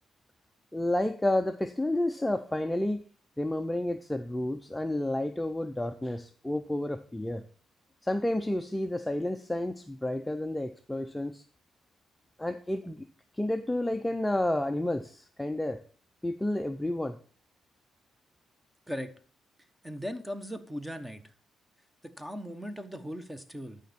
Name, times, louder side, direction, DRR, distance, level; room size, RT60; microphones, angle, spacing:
voice 1, 0.7-3.0 3.4-7.4 8.0-11.4 12.4-13.1 13.3-15.8 16.2-17.2, left 1 dB, 10° left, 8 dB, 0.5 m, -30 dB
voice 2, 19.8-21.2 22.0-23.8, equal, 5° right, 11 dB, 1.0 m, -38 dB
11.5 x 5.2 x 4.3 m, 0.43 s
cardioid pair, 90°, 0 cm